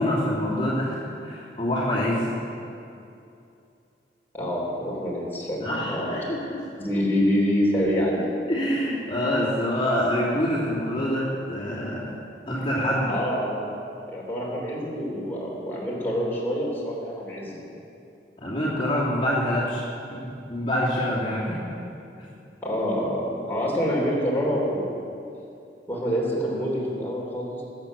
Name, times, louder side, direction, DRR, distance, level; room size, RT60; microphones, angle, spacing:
voice 1, 0.0-2.3 5.6-6.6 8.5-12.1 12.5-13.1 18.4-19.8 20.5-21.6, equal, 30° left, -8 dB, 2.7 m, -26 dB
voice 2, 4.3-5.6 5.9-6.2 6.8-8.2 13.1-13.7 14.1-17.6 22.6-25.0 25.9-27.6, equal, 10° left, -5 dB, 3.4 m, -26 dB
20.0 x 8.3 x 6.8 m, 2.6 s
head